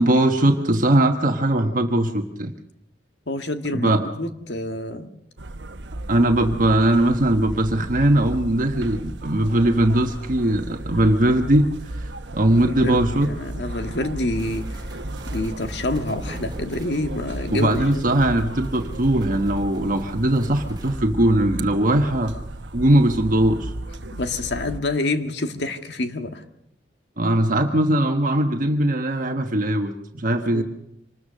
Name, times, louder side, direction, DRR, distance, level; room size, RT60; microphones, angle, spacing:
voice 1, 0.0-2.5 3.7-4.0 6.1-13.3 17.5-22.3 22.7-23.7 27.2-30.6, right 1 dB, 50° right, 4 dB, 1.3 m, -20 dB
voice 2, 3.3-5.1 12.6-14.7 15.3-18.0 24.1-26.4 30.5-30.6, left 2 dB, 70° left, 7 dB, 1.7 m, -27 dB
sound 1, 5.4-24.8, right 1 dB, 85° right, 1.1 m, -34 dB
sound 2, 14.3-21.0, right 1 dB, 25° right, 2.0 m, -40 dB
25.5 x 20.0 x 6.5 m, 0.79 s
head